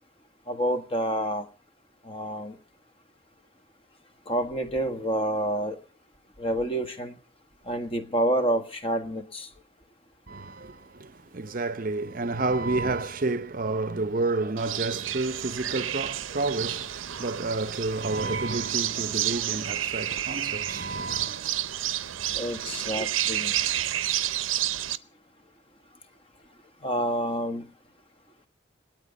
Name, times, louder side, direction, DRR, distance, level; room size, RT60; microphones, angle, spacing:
voice 1, 0.5-1.5 2.0-2.5 4.3-5.8 6.4-7.2 7.7-9.5 22.3-23.5 26.8-27.7, equal, 30° left, 1.4 m, -28 dB
voice 2, 10.3-21.6 23.0-23.1, right 3 dB, 45° right, 0.7 m, -30 dB
sound 1, 14.6-25.0, right 12 dB, 85° right, 0.7 m, -30 dB
27.0 x 9.3 x 5.3 m
head